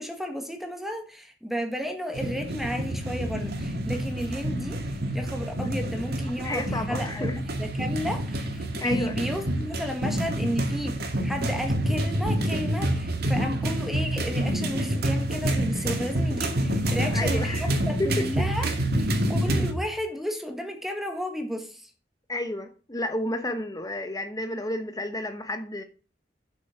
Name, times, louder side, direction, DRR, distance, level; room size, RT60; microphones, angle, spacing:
voice 1, 0.0-4.8 5.1-18.7 19.0-21.9, equal, ahead, 1.4 m, -33 dB
sound 1, 2.1-19.7, right 1 dB, 60° right, 2.2 m, -28 dB
voice 2, 6.4-7.4 8.8-9.2 17.0-17.7 18.0-18.3 18.6-18.8 22.3-25.8, left 1 dB, 20° left, 1.0 m, -31 dB
7.8 x 7.7 x 5.9 m
head